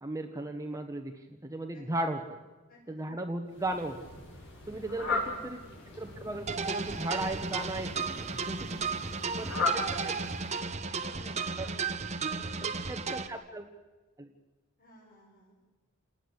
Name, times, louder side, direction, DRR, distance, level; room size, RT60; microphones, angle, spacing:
voice 1, 0.0-1.1 1.4-2.4 2.9-4.0 4.7-5.6 6.0-8.6 9.3-10.1 11.6-11.7 12.9-13.6 14.2-14.3, right 1 dB, 15° right, 4 dB, 1.4 m, -36 dB
voice 2, 2.7-3.1 4.7-5.1 8.1-9.0 9.3-9.4 11.0-12.8 14.8-15.5, left 1 dB, 40° left, -2 dB, 5.7 m, -55 dB
Fowl, 3.5-10.9, left 2 dB, 55° left, 7.1 m, -38 dB
sound 1, 6.5-13.3, right 4 dB, 30° right, 1.2 m, -34 dB
29.0 x 19.5 x 8.3 m, 1.2 s
head